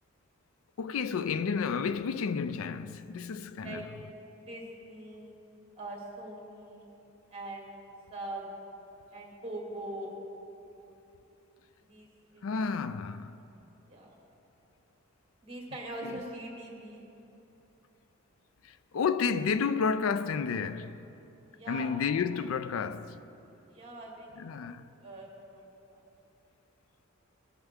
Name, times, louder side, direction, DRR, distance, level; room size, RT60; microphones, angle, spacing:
voice 1, 0.8-3.8 12.4-13.4 18.9-21.0 21.7-23.2 24.4-24.8, left 5 dB, 85° left, 0.4 m, -31 dB
voice 2, 3.6-3.9 4.3-5.3 5.8-6.9 7.3-8.5 9.1-10.1 11.8-12.1 12.3-13.0 13.9-14.2 15.4-17.1 21.5-21.9 23.7-26.0, right 1 dB, 30° right, 2.1 m, -43 dB
18.5 x 8.8 x 3.6 m
head